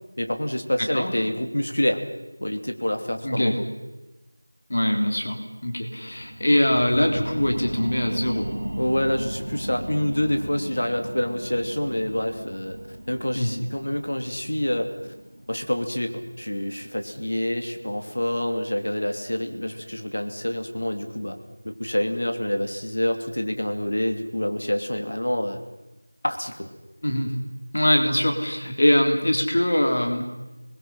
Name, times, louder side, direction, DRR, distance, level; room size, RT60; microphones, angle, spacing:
voice 1, 0.2-2.0 2.4-3.7 8.8-12.8 13.1-14.9 15.5-21.4 21.6-25.6 26.2-26.7, left 1 dB, 65° left, 6 dB, 2.9 m, -27 dB
voice 2, 0.8-1.1 3.2-3.5 4.7-8.5 13.4-13.5 27.0-27.3 27.7-30.2, left 1 dB, 50° left, 4 dB, 3.5 m, -22 dB
sound 1, 6.0-17.2 17.6-17.7, right 1 dB, 65° right, 2.0 m, -36 dB
28.5 x 21.5 x 5.7 m, 1.1 s
figure-of-eight pair, 175°, 0 cm